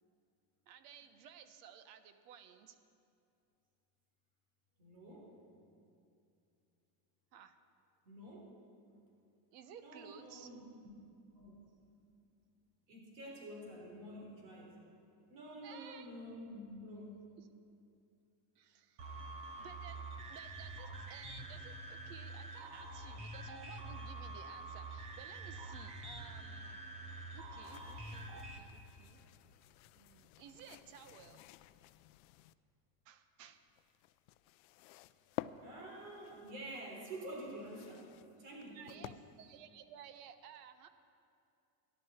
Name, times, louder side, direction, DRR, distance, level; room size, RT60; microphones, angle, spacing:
voice 1, 0.7-2.8 7.3-7.6 9.5-10.5 15.6-16.1 17.4-17.5 18.5-19.1 19.6-20.0 20.3-26.9 27.3-29.2 30.0-31.4 33.0-33.6 37.9-38.0 38.7-40.9, right 8 dB, 75° right, 10 dB, 1.2 m, -56 dB
voice 2, 4.8-5.4 8.0-8.5 9.8-11.0 11.3-11.6 12.9-14.8 15.3-17.3 35.6-38.1 38.4-39.1, right 1 dB, 50° right, -2 dB, 3.8 m, -49 dB
sound 1, 19.0-28.6, right 2 dB, 15° right, 0.3 m, -46 dB
sound 2, 27.6-32.5 33.5-39.6, left 15 dB, 60° left, 0.5 m, -52 dB
18.5 x 11.5 x 4.4 m, 2.5 s
cardioid pair, 175°, 48 cm